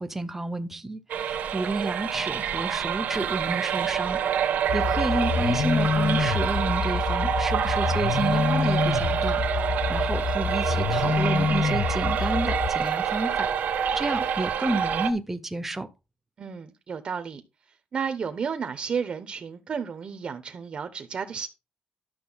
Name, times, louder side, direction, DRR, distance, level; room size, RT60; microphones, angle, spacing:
voice 1, 0.0-4.2 4.7-9.4 9.9-13.5 14.0-15.9, right 2 dB, 10° right, 0.9 m, -30 dB
sound 1, 1.1-15.1, right 8 dB, 70° right, 1.3 m, -27 dB
sound 2, 4.7-12.7, left 6 dB, 55° left, 0.7 m, -27 dB
voice 2, 16.4-17.4 17.9-21.5, right 6 dB, 40° right, 0.9 m, -32 dB
11.5 x 6.6 x 4.0 m
wide cardioid pair, 165°, 3 cm